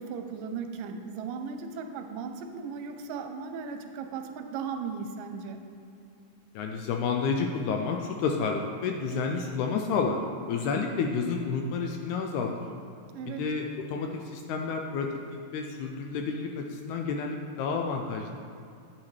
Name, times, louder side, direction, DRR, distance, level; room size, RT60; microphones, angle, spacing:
voice 1, 0.0-5.6 13.1-13.5, right 5 dB, 85° right, 6 dB, 2.3 m, -37 dB
voice 2, 6.6-10.2 10.5-12.5 13.4-15.1 15.5-18.3, left 5 dB, 80° left, 2 dB, 1.8 m, -30 dB
10.0 x 8.6 x 3.2 m, 2.5 s
omnidirectional pair, 3.8 m